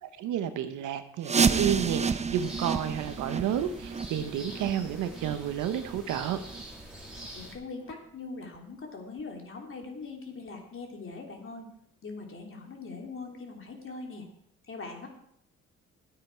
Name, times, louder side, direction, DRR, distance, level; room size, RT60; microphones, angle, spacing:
voice 1, 0.0-6.4, right 10 dB, 90° right, 10 dB, 1.1 m, -31 dB
sound 1, 1.2-6.8 7.2-7.3 7.8-7.9 8.5-8.6 9.2-9.3, right 5 dB, 20° right, 0.6 m, -30 dB
sound 2, 2.3-7.5, right 1 dB, 5° right, 3.9 m, -45 dB
voice 2, 7.3-11.7 12.0-14.3 14.7-15.1, left 3 dB, 45° left, 2 dB, 3.0 m, -41 dB
13.0 x 9.1 x 4.5 m, 0.69 s
cardioid pair, 90°, 30 cm